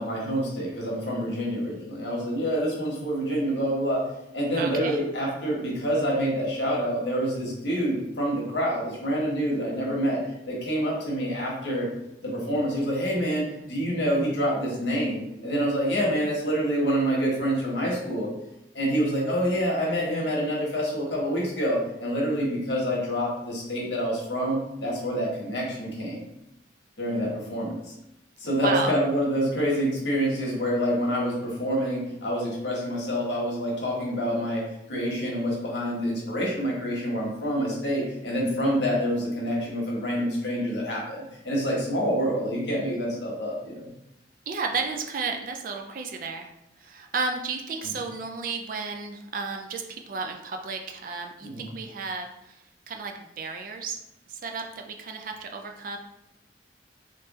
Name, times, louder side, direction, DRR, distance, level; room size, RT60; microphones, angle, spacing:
voice 1, 0.0-4.0 4.3-10.2 10.4-11.9 12.2-18.3 18.7-26.3 27.0-27.9 28.4-43.9 51.4-51.7, equal, 75° left, -4 dB, 1.2 m, -27 dB
voice 2, 4.6-5.0 28.6-28.9 44.5-46.5 46.8-54.0 54.3-56.0, right 4 dB, 45° right, 4 dB, 0.3 m, -33 dB
3.2 x 3.2 x 3.0 m, 0.86 s
head